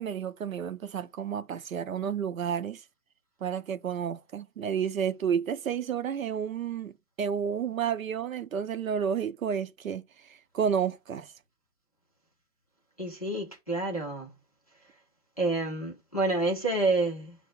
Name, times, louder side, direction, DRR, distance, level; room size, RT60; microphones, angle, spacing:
voice 1, 0.0-2.8 3.4-11.3, right 8 dB, 60° right, 0.5 m, -31 dB
voice 2, 13.0-14.3 15.4-17.4, right 2 dB, 25° left, 0.5 m, -28 dB
4.5 x 2.0 x 4.2 m
hypercardioid pair, 160°, 46 cm